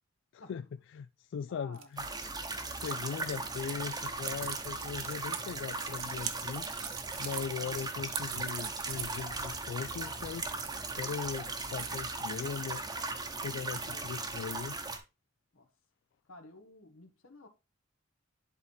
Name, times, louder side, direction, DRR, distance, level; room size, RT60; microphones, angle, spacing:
voice 1, 0.3-0.6 0.9-2.0 2.7-6.7 7.2-10.5 10.9-12.8 13.4-14.8, left 6 dB, 60° left, 0.3 m, -39 dB
voice 2, 1.5-1.9 3.2-3.5 4.8-4.9 5.4-5.6 7.6-7.9 12.4-12.6 13.8-14.1 15.5-15.7 16.3-17.5, left 3 dB, 90° left, 1.6 m, -52 dB
sound 1, 1.7-11.2 11.5-12.5, right 11 dB, 70° right, 0.8 m, -43 dB
sound 2, 2.0-15.0, right 3 dB, 20° right, 0.9 m, -38 dB
10.5 x 4.0 x 3.4 m
head